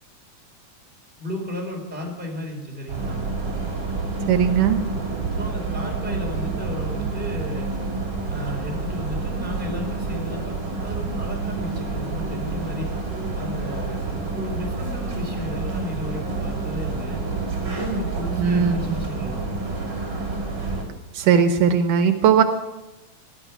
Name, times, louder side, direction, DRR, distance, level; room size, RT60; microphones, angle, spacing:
voice 1, 1.2-3.2 5.3-7.7 8.3-12.9 13.3-17.2 18.0-19.4, left 1 dB, 5° right, -1 dB, 3.5 m, -34 dB
sound 1, 2.9-20.8, right 3 dB, 35° right, 3.4 m, -28 dB
voice 2, 4.3-4.8 18.4-18.8 21.1-22.4, right 7 dB, 80° right, 7 dB, 2.4 m, -18 dB
17.5 x 12.0 x 5.9 m, 1.0 s
omnidirectional pair, 3.8 m